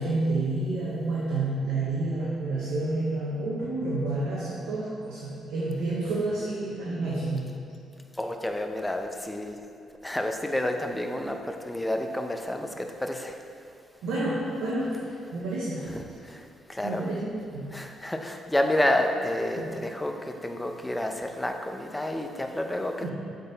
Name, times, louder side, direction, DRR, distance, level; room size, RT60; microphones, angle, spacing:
voice 1, 0.0-7.5 14.0-15.0 15.3-15.9 16.8-17.7 19.6-19.7 23.0-23.1, right 2 dB, 90° right, -5 dB, 0.9 m, -29 dB
voice 2, 8.2-9.6 10.0-13.4 15.9-16.4 16.7-17.2 17.7-22.9, left 1 dB, 10° left, 4 dB, 0.5 m, -29 dB
7.6 x 4.0 x 3.9 m, 2.5 s
cardioid pair, 90°, 0 cm